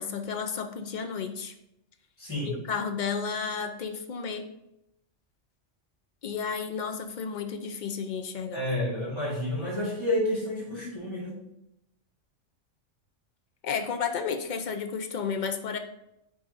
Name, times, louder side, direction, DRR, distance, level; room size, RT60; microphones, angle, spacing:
voice 1, 0.0-1.5 2.4-4.5 6.2-8.7 13.6-15.8, left 6 dB, 55° left, 6 dB, 0.5 m, -32 dB
voice 2, 2.2-2.6 8.5-11.4, left 1 dB, 20° left, -5 dB, 2.0 m, -30 dB
9.2 x 4.0 x 2.6 m, 0.84 s
omnidirectional pair, 1.3 m